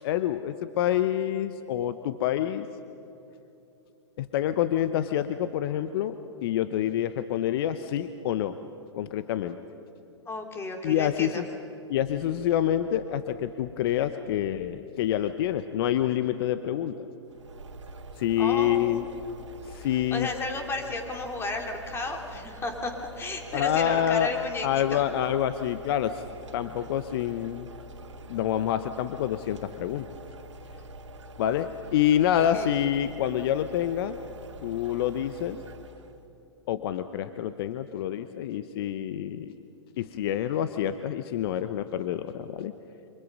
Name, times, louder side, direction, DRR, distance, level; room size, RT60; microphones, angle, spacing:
voice 1, 0.0-2.7 4.2-8.6 8.9-9.6 10.8-11.5 11.9-17.1 18.2-19.1 19.6-20.3 23.5-24.3 24.6-26.2 26.5-27.7 28.3-30.1 31.4-34.2 34.6-35.6 36.7-39.5 40.0-42.7, left 11 dB, 55° left, 11 dB, 0.9 m, -27 dB
voice 2, 10.3-11.4 18.4-19.0 20.1-25.3 32.3-32.7, left 2 dB, 15° left, 3 dB, 3.1 m, -33 dB
sound 1, 17.3-36.2, right 1 dB, 80° right, 2.1 m, -46 dB
27.5 x 25.0 x 5.4 m, 2.8 s
hypercardioid pair, 115°, 15 cm